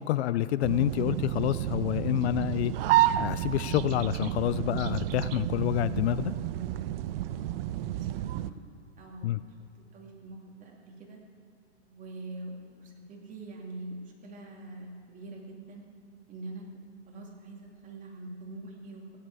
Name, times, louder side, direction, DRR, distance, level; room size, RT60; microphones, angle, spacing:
voice 1, 0.0-2.7 3.2-6.3 9.2-9.4, left 13 dB, 70° left, 16 dB, 0.5 m, -28 dB
sound 1, 0.6-8.5, right 13 dB, 55° right, 0.6 m, -30 dB
voice 2, 7.9-8.5 9.0-9.3 9.9-11.2 11.8-15.8 16.3-16.7 17.1-19.2, right 2 dB, 25° right, -2 dB, 2.7 m, -44 dB
17.0 x 10.5 x 4.9 m, 2.6 s
hypercardioid pair, 135°, 34 cm